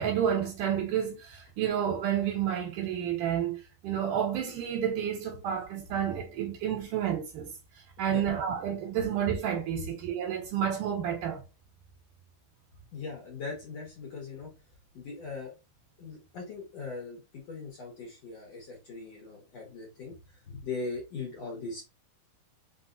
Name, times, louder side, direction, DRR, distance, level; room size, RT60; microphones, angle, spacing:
voice 1, 0.0-7.5 8.0-11.4, right 9 dB, 65° right, 2.7 m, -30 dB
voice 2, 12.7-14.5 14.9-15.5 16.0-21.8, left 4 dB, 55° left, 1.9 m, -40 dB
5.5 x 3.6 x 2.6 m
omnidirectional pair, 4.3 m